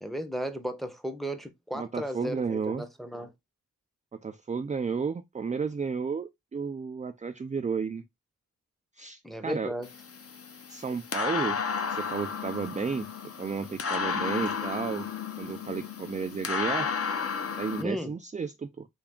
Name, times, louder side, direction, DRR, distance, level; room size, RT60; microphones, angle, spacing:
voice 1, 0.0-3.3 9.2-9.9 17.8-18.1, equal, ahead, 0.7 m, -35 dB
voice 2, 1.7-2.9 4.1-8.0 9.0-9.7 10.7-11.6 11.9-13.1 13.4-15.1 15.4-16.9 17.6-18.9, right 5 dB, 20° right, 0.3 m, -32 dB
sound 1, 9.8-17.8, left 6 dB, 40° left, 0.7 m, -33 dB
3.5 x 2.3 x 3.6 m
cardioid pair, 55°, 36 cm